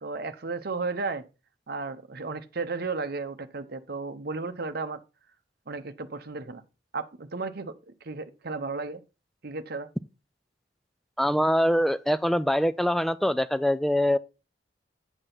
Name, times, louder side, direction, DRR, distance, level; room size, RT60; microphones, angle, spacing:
voice 1, 0.0-1.2 1.7-5.0 5.7-6.6 6.9-7.7 8.0-9.0 9.4-9.9, right 4 dB, 55° right, 0.8 m, -34 dB
voice 2, 11.2-14.2, equal, ahead, 0.4 m, -24 dB
8.9 x 6.2 x 3.9 m
head